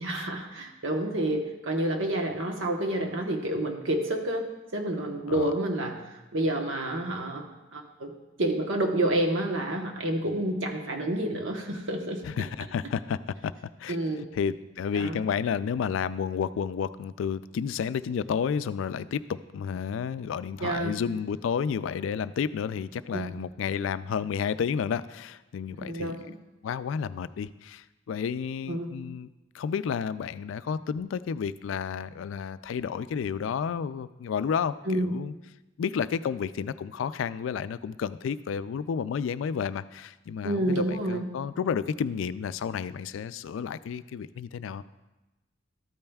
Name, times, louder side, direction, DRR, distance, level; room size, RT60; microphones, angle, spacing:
voice 1, 0.0-6.0 6.3-8.1 8.4-12.5 13.9-14.2 14.9-15.2 20.6-21.0 23.1-23.3 25.7-26.2 28.7-28.9 34.8-35.1 40.4-41.3, right 1 dB, 80° right, 2 dB, 1.1 m, -29 dB
voice 2, 12.2-13.5 13.8-14.0 14.3-26.2 26.6-29.3 29.5-35.3 35.8-44.8, left 7 dB, 80° left, 15 dB, 0.3 m, -31 dB
13.0 x 8.7 x 2.3 m, 1.1 s
head